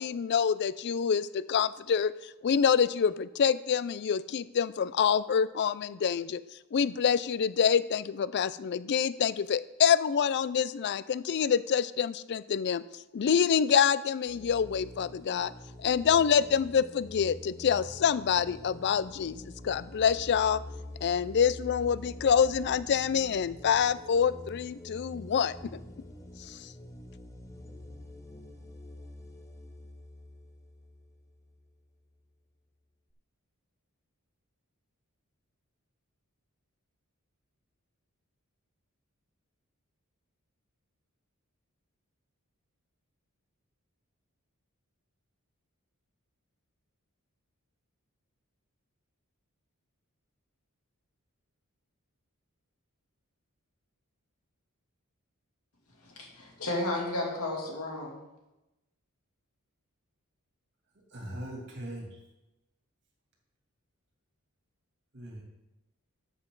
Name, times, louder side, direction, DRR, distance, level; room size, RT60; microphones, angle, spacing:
voice 1, 0.0-6.4 6.7-12.8 13.1-15.5 15.8-20.6 21.0-25.8 26.4-26.7, left 7 dB, 50° left, 17 dB, 0.4 m, -26 dB
sound 1, 14.3-31.7, left 1 dB, 15° left, 0.8 m, -46 dB
voice 2, 56.1-58.2, left 2 dB, 80° left, -2 dB, 2.8 m, -33 dB
voice 3, 61.1-62.2 65.1-65.4, right 1 dB, 55° right, -1 dB, 2.6 m, -40 dB
13.0 x 6.8 x 3.9 m, 0.97 s
head